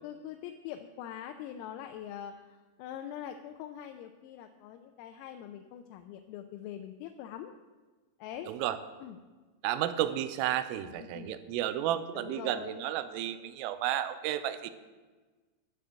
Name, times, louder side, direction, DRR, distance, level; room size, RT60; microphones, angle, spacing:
voice 1, 0.0-7.5 8.2-8.5 9.0-9.2 10.8-11.4 12.1-12.9, left 10 dB, 85° left, 6 dB, 3.4 m, -43 dB
voice 2, 8.5-8.8 9.6-14.7, right 12 dB, 85° right, 11 dB, 3.2 m, -32 dB
11.5 x 11.0 x 7.5 m, 1.3 s
omnidirectional pair, 6.0 m